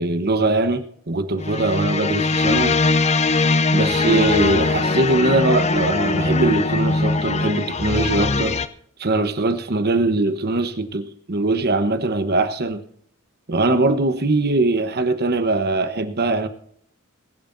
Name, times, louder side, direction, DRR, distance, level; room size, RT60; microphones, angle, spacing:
voice 1, 0.0-2.8 3.7-8.6 9.0-12.8 13.5-16.5, right 2 dB, 45° right, 1.1 m, -21 dB
sound 1, 1.4-8.7, left 3 dB, 30° left, 0.6 m, -21 dB
22.0 x 11.0 x 2.7 m
head